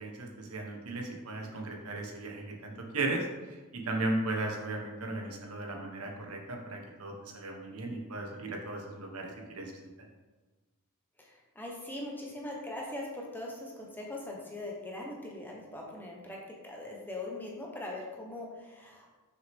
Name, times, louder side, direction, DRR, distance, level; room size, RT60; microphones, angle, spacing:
voice 1, 0.0-9.9, right 2 dB, 75° right, 2 dB, 1.3 m, -36 dB
voice 2, 11.2-16.4 16.6-19.1, left 2 dB, 10° left, -2 dB, 1.1 m, -41 dB
6.3 x 6.3 x 3.6 m, 1.3 s
head